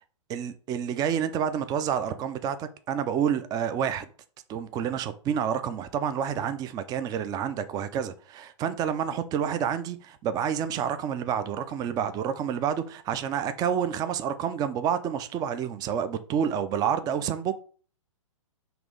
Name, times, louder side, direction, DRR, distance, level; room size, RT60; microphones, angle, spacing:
voice 1, 0.3-4.1 4.5-17.6, right 8 dB, 25° right, 0.5 m, -29 dB
6.0 x 3.0 x 5.2 m
hypercardioid pair, 120°, 17 cm